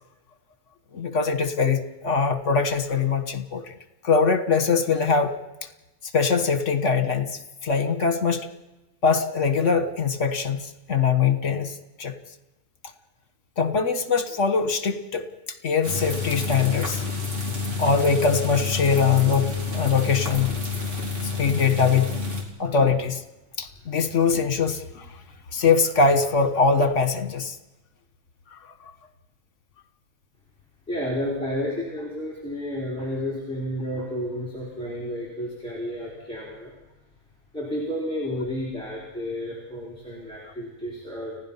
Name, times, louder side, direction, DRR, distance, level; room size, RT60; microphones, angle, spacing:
voice 1, 0.9-3.7 4.0-5.3 6.1-7.3 7.6-8.5 9.0-10.6 10.9-11.7 12.0-12.1 13.6-15.3 15.6-17.0 17.8-20.6 21.4-22.2 22.6-23.2 23.6-24.8 25.5-27.6, left 5 dB, 65° left, 9 dB, 1.8 m, -22 dB
sound 1, 15.8-22.4, left 4 dB, 65° right, 3.9 m, -29 dB
voice 2, 30.9-36.7 37.5-41.4, equal, 5° left, -5 dB, 4.5 m, -31 dB
30.0 x 16.5 x 5.7 m, 1.0 s
omnidirectional pair, 1.4 m